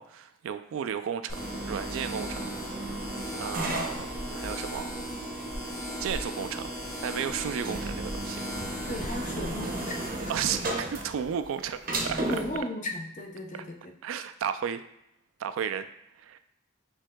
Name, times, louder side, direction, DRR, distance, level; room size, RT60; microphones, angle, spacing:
voice 1, 0.0-2.5 3.4-5.0 6.0-6.7 7.0-8.5 10.3-12.2 13.5-13.6 14.0-14.8 15.4-15.9 16.1-16.4, right 8 dB, 80° right, 10 dB, 0.3 m, -33 dB
sound 1, 1.3-10.1, equal, 15° left, 1.5 m, -37 dB
sound 2, 1.4-12.6, right 2 dB, 45° right, 0.7 m, -36 dB
voice 2, 8.9-10.3 12.3-13.9, left 1 dB, 35° left, 2 dB, 0.6 m, -35 dB
6.3 x 3.6 x 2.2 m, 0.78 s
head